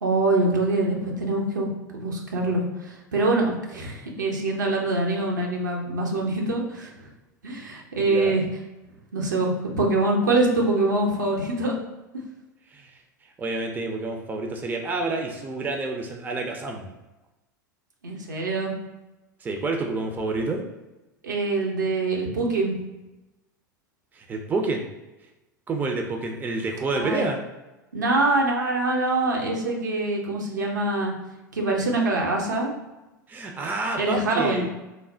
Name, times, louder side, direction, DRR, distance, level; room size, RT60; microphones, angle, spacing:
voice 1, 0.0-3.4 3.7-6.9 7.4-8.4 9.1-9.5 9.8-11.7 12.1-12.2 18.0-18.7 21.2-22.8 26.9-27.2 27.9-31.1 31.5-32.7 34.0-34.7, right 2 dB, 75° right, -1 dB, 0.7 m, -24 dB
voice 2, 8.0-8.4 12.7-13.0 13.4-16.9 19.4-20.6 24.1-24.9 25.7-27.4 33.3-34.7, right 3 dB, 15° right, 3 dB, 0.4 m, -28 dB
3.2 x 2.1 x 3.8 m, 1.0 s
figure-of-eight pair, 80°, 10 cm